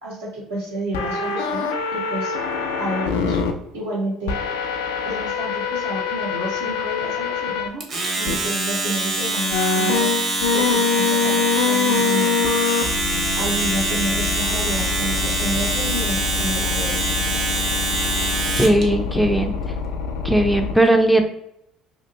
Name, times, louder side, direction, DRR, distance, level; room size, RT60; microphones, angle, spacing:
voice 1, 0.0-2.3 2.8-3.4 3.7-4.4 5.0-7.8 8.1-10.1 10.5-12.4 13.3-17.0, right 1 dB, 85° right, -6 dB, 1.4 m, -30 dB
sound 1, 0.9-3.5 4.3-7.7 8.3-8.4 9.5-20.7, left 5 dB, 80° left, 0.4 m, -25 dB
Domestic sounds home sounds, 7.8-18.8, right 1 dB, 45° right, 1.0 m, -24 dB
voice 2, 18.6-19.5 20.2-21.3, right 1 dB, ahead, 4 dB, 0.5 m, -17 dB
2.9 x 2.4 x 3.2 m, 0.78 s
hypercardioid pair, 60°, 0 cm